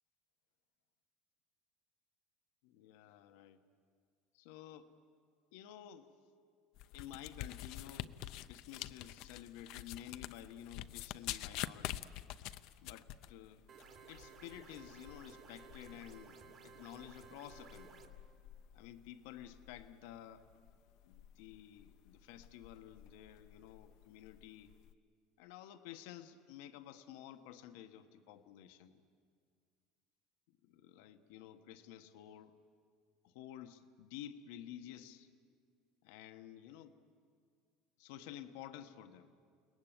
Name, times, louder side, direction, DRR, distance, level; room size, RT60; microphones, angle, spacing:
voice 1, 2.6-3.6 4.3-4.9 5.5-6.1 6.9-8.2 8.5-12.0 12.8-13.6 14.1-18.0 18.7-20.4 21.0-24.7 25.4-29.0 30.5-32.6 33.2-35.3 36.0-36.9 38.0-39.3, left 11 dB, 80° left, 8 dB, 1.3 m, -52 dB
sound 1, 6.7-24.9, left 14 dB, 55° left, 0.6 m, -48 dB
sound 2, 13.7-18.1, right 5 dB, 35° right, 2.2 m, -57 dB
29.5 x 19.5 x 9.1 m, 2.1 s
cardioid pair, 155°, 0 cm